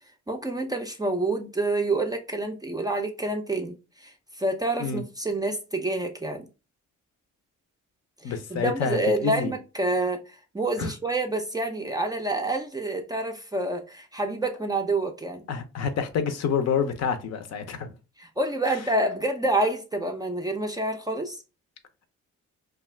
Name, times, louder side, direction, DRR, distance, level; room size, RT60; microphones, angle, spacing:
voice 1, 0.3-6.5 8.2-15.5 18.2-21.4, right 2 dB, 15° right, 0.4 m, -28 dB
voice 2, 8.2-9.5 10.8-10.9 15.5-17.9, left 6 dB, 60° left, 0.5 m, -28 dB
2.4 x 2.3 x 3.1 m
cardioid pair, 90°, 30 cm